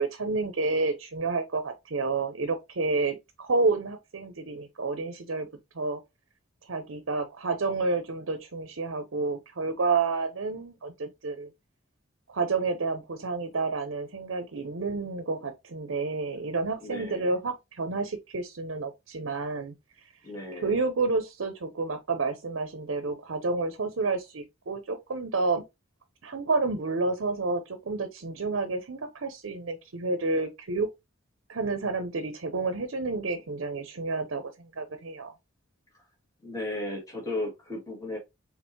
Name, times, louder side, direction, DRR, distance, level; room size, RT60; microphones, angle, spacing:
voice 1, 0.0-5.5 5.7-6.0 6.6-11.5 12.3-19.7 20.5-25.6 26.2-30.9 31.5-35.3, right 3 dB, 70° right, 0.7 m, -30 dB
voice 2, 16.8-17.3 20.2-20.7 36.4-38.2, left 1 dB, 15° left, 2.0 m, -35 dB
4.4 x 4.0 x 2.8 m
head